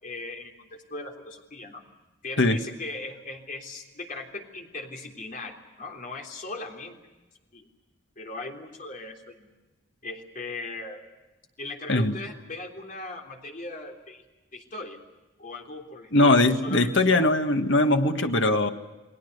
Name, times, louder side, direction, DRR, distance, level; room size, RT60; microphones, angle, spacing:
voice 1, 0.0-1.8 2.2-7.0 7.5-7.7 8.1-9.5 10.0-11.0 11.6-14.2 14.5-15.0 15.4-17.4 18.2-18.3, left 2 dB, 45° left, 1 dB, 3.5 m, -39 dB
voice 2, 16.1-18.7, left 2 dB, 70° left, 6 dB, 1.7 m, -21 dB
30.0 x 20.0 x 6.8 m, 1.1 s
head